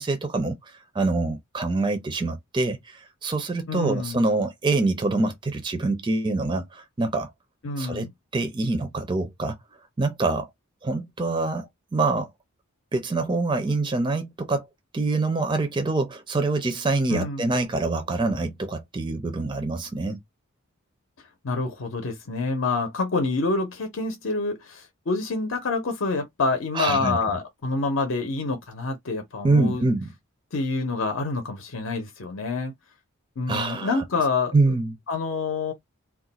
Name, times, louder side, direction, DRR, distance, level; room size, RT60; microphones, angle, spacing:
voice 1, 0.0-7.3 7.8-8.1 8.3-9.6 10.0-10.5 10.8-12.3 12.9-14.7 14.9-20.2 26.7-27.4 29.4-30.1 33.5-34.0 34.5-35.0, right 3 dB, 20° right, 0.4 m, -25 dB
voice 2, 3.7-4.2 7.6-8.1 17.1-17.4 21.4-29.8 30.5-32.7 33.4-34.5 35.1-35.7, left 3 dB, 65° left, 0.6 m, -27 dB
2.4 x 2.2 x 3.9 m
head